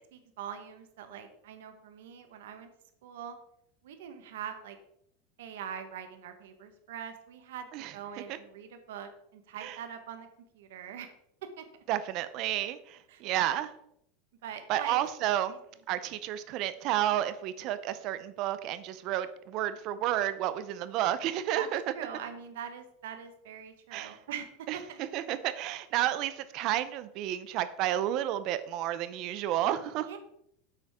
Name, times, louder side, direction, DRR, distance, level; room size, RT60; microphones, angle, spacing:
voice 1, 0.0-2.7 3.0-3.3 3.8-4.8 5.4-10.3 10.5-11.1 11.4-11.6 13.1-13.2 14.4-15.0 15.5-15.6 21.5-21.7 21.9-24.5 24.7-25.0 30.0-30.2, right 8 dB, 85° right, 7 dB, 1.3 m, -43 dB
voice 2, 11.9-13.7 14.7-15.5 15.9-21.8 23.9-24.2 24.7-30.1, right 12 dB, 40° right, 13 dB, 0.6 m, -31 dB
10.0 x 8.0 x 3.6 m, 0.75 s
supercardioid pair, 175°, 0 cm